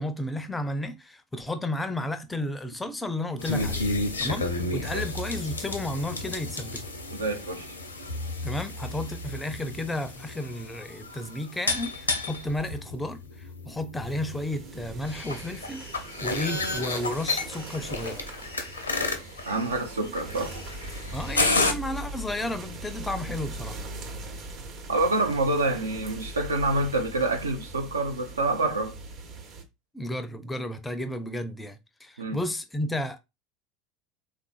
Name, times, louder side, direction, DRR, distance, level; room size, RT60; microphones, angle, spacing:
voice 1, 0.0-3.9 4.2-6.8 8.4-18.3 21.1-23.8 29.9-33.2, left 1 dB, 10° left, 0.5 m, -33 dB
sound 1, 3.4-21.7, left 3 dB, 80° left, 0.6 m, -32 dB
voice 2, 7.1-7.7 19.4-20.5 24.9-28.9 32.2-32.4, right 2 dB, 75° right, 0.6 m, -27 dB
sound 2, 14.0-29.6, right 2 dB, 45° right, 0.8 m, -40 dB
3.4 x 2.4 x 2.4 m
figure-of-eight pair, 75°, 0 cm